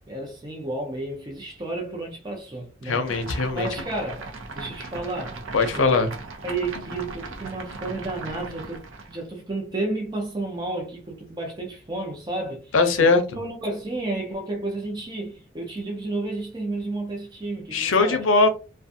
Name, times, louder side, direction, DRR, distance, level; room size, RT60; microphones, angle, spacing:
voice 1, 0.1-3.1 3.5-5.4 5.8-6.0 6.4-18.3, right 2 dB, 20° right, 0.5 m, -32 dB
voice 2, 2.9-3.7 5.5-6.1 12.7-13.2 17.7-18.5, left 3 dB, 85° left, 0.6 m, -20 dB
sound 1, 3.0-9.2, right 3 dB, 85° right, 0.6 m, -38 dB
2.5 x 2.2 x 2.6 m
head